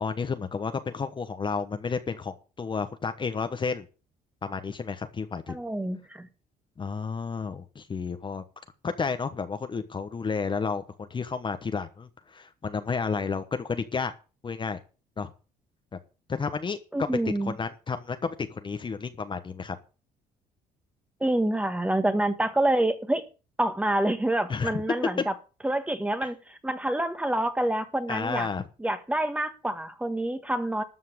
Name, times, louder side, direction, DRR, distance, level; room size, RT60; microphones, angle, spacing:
voice 1, 0.0-3.9 4.4-5.6 6.8-8.4 8.8-14.1 14.4-14.8 15.2-15.3 16.4-16.8 17.5-19.8 24.5-24.7 28.1-28.6, left 5 dB, 30° left, 1.2 m, -31 dB
voice 2, 5.5-6.3 16.9-17.6 21.2-23.2 23.6-25.3 25.6-28.5 28.8-30.8, right 1 dB, 10° right, 1.6 m, -27 dB
13.0 x 5.6 x 8.0 m
cardioid pair, 110°, 17 cm